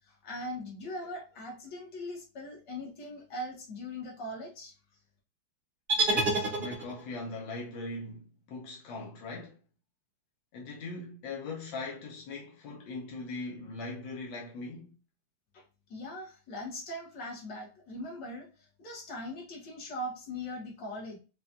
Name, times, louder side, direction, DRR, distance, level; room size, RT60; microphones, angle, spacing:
voice 1, 0.1-4.7 15.5-15.6 15.9-18.5 18.8-21.2, left 1 dB, 65° left, 1.9 m, -40 dB
sound 1, 5.9-7.2, right 2 dB, 45° right, 0.7 m, -28 dB
voice 2, 6.0-9.6 10.5-14.9, left 3 dB, 85° left, 1.5 m, -40 dB
4.9 x 2.3 x 2.7 m
omnidirectional pair, 2.0 m